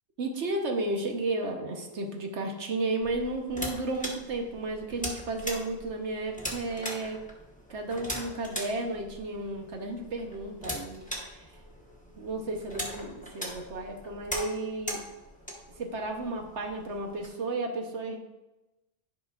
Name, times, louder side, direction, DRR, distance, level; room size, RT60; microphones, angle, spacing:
voice 1, 0.2-7.2 7.7-11.5 12.2-15.0 15.8-18.2, right 2 dB, 75° right, 3 dB, 1.2 m, -33 dB
sound 1, 3.0-17.3, equal, 5° left, 1.1 m, -40 dB
10.5 x 5.2 x 2.4 m, 1.0 s
omnidirectional pair, 1.2 m